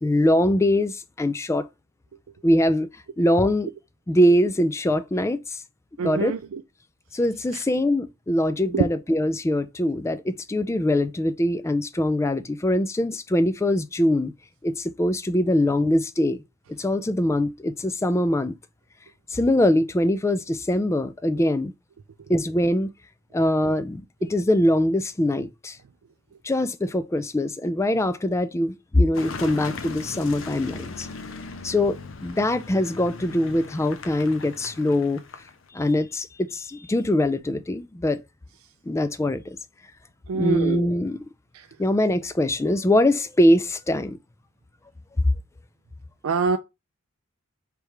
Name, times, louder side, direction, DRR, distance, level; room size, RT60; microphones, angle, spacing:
voice 1, 0.0-1.7 2.4-2.9 3.2-3.7 4.1-5.6 6.0-6.4 7.1-14.3 14.6-16.4 16.8-18.6 19.3-21.7 22.3-22.9 23.3-25.8 26.4-31.1 31.6-35.2 35.7-38.2 38.9-39.6 40.3-41.2 41.8-44.2, left 1 dB, 15° left, 0.3 m, -22 dB
voice 2, 6.0-6.6 8.7-8.9 40.3-40.9 46.2-46.6, right 5 dB, 80° right, 0.4 m, -24 dB
Car passing by / Engine, 29.1-35.7, left 4 dB, 65° left, 0.6 m, -38 dB
3.3 x 3.2 x 4.7 m
head